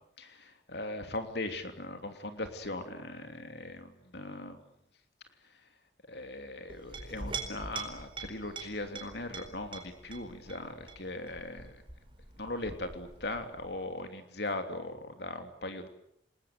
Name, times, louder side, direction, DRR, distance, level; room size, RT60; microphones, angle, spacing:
voice 1, 0.2-4.6 6.1-11.8 12.4-15.9, left 2 dB, 60° left, 7 dB, 3.0 m, -39 dB
Chink clink, 6.7-13.8, right 4 dB, 25° right, 4.5 m, -44 dB
29.5 x 20.5 x 9.5 m, 0.73 s
head